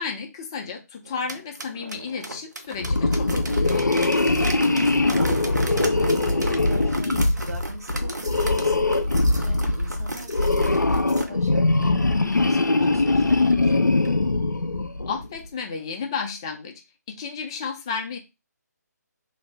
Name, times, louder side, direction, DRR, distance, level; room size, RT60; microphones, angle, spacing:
voice 1, 0.0-4.1 15.1-16.7 17.1-18.2, left 5 dB, 15° left, 3 dB, 0.4 m, -33 dB
sound 1, 1.1-11.3 11.8-11.9 12.3-12.4 12.9-13.0 13.5-13.6 14.1-14.2, right 2 dB, 75° right, 0.6 m, -36 dB
sound 2, 2.8-15.3, left 2 dB, 85° left, 0.4 m, -22 dB
voice 2, 4.7-13.8, right 3 dB, 60° right, 1 dB, 1.0 m, -41 dB
2.6 x 2.0 x 3.3 m, 0.25 s
figure-of-eight pair, 150°, 10 cm